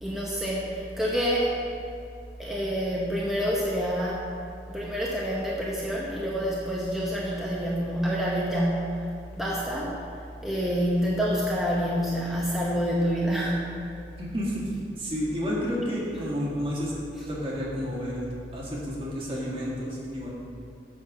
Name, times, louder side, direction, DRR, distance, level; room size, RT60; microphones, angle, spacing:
voice 1, 0.0-1.6 2.4-4.3 4.7-9.1 9.4-10.0 10.4-13.8, equal, ahead, -6 dB, 0.8 m, -27 dB
voice 2, 14.2-14.7 15.0-16.9 17.2-18.3 18.5-20.3, equal, 30° right, -5 dB, 1.9 m, -30 dB
7.8 x 6.9 x 4.9 m, 2.5 s
head